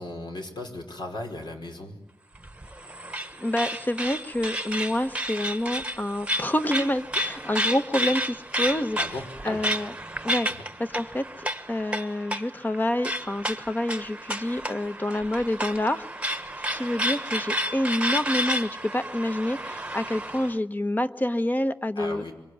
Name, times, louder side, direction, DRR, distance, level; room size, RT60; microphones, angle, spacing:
voice 1, 0.0-2.0 9.0-9.6 22.0-22.3, left 2 dB, 70° left, 3 dB, 5.0 m, -36 dB
sound 1, 2.3-20.5, equal, 15° right, 1.2 m, -31 dB
voice 2, 3.4-9.0 9.4-9.9 10.2-10.5 10.8-16.3 16.7-22.2, left 1 dB, 20° left, 10 dB, 1.1 m, -28 dB
25.5 x 24.5 x 9.6 m, 0.97 s
wide cardioid pair, 100°, 8 cm